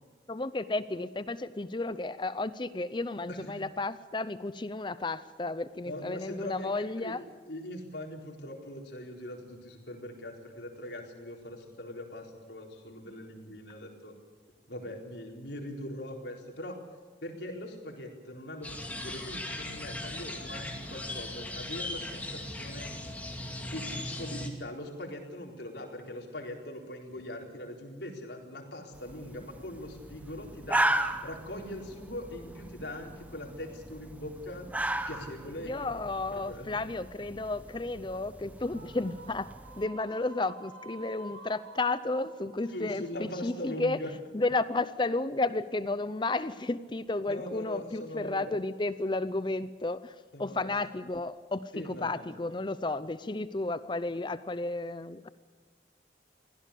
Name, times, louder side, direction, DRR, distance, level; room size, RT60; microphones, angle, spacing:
voice 1, 0.3-7.2 35.6-39.5 39.8-44.0 44.3-55.3, left 2 dB, 25° left, 14 dB, 0.6 m, -32 dB
voice 2, 3.3-3.6 5.9-6.7 7.0-7.2 7.5-14.1 14.7-16.8 17.2-23.0 23.4-30.9 31.2-34.7 35.1-35.9 36.3-36.7 42.7-44.1 47.3-48.6 50.3-50.7 51.7-52.3, left 1 dB, 70° left, 1 dB, 4.2 m, -41 dB
sound 1, 18.6-24.5, left 1 dB, 10° left, 2.4 m, -38 dB
sound 2, 28.9-39.8, right 1 dB, 10° right, 0.9 m, -36 dB
short female vocal - katarina rose, 38.6-44.0, right 3 dB, 60° right, 5.6 m, -50 dB
23.5 x 16.5 x 8.5 m, 1.4 s
head